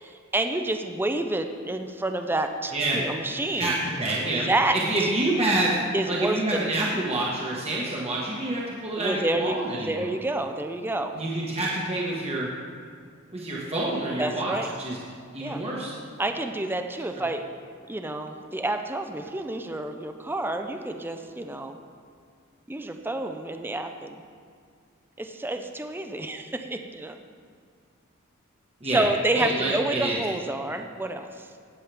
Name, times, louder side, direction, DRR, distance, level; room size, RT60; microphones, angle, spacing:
voice 1, 0.0-3.7 4.4-4.8 5.9-6.7 9.0-9.6 9.8-11.1 14.2-14.7 15.4-15.6 16.2-17.4 17.9-21.8 22.7-24.2 25.2-27.2 28.9-31.3, right 2 dB, 10° right, 6 dB, 0.5 m, -29 dB
voice 2, 3.5-4.5 4.7-5.8 6.1-10.1 11.1-12.5 13.3-15.0 15.3-15.9 28.8-29.0 29.3-30.2, right 2 dB, 30° right, -5 dB, 1.4 m, -27 dB
17.5 x 7.5 x 3.4 m, 2.1 s
head